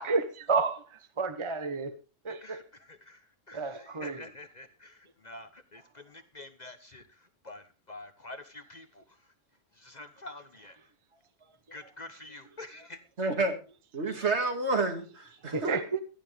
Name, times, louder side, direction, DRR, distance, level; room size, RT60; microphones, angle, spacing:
voice 1, 0.0-2.0 2.2-2.6 3.5-4.2 15.4-16.0, right 4 dB, 25° right, 1.0 m, -31 dB
voice 2, 2.3-9.2 9.7-10.8 11.7-13.0, left 2 dB, 40° left, 1.0 m, -47 dB
voice 3, 13.2-13.6 13.9-15.7, right 3 dB, 60° right, 2.4 m, -29 dB
16.5 x 12.5 x 3.4 m
omnidirectional pair, 1.3 m